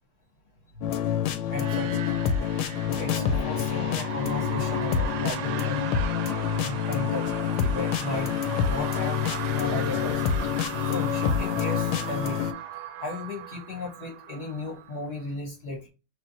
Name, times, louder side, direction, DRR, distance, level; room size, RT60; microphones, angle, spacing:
sound 1, 0.8-12.5, left 8 dB, 80° left, 1.3 m, -27 dB
voice 1, 1.5-2.1 2.9-5.9 6.6-9.3 9.5-10.2 10.8-12.5 13.0-15.9, left 2 dB, 40° left, -1 dB, 1.0 m, -35 dB
sound 2, 1.5-15.2, right 9 dB, 75° right, 1.0 m, -37 dB
3.4 x 2.7 x 3.9 m, 0.29 s
omnidirectional pair, 2.1 m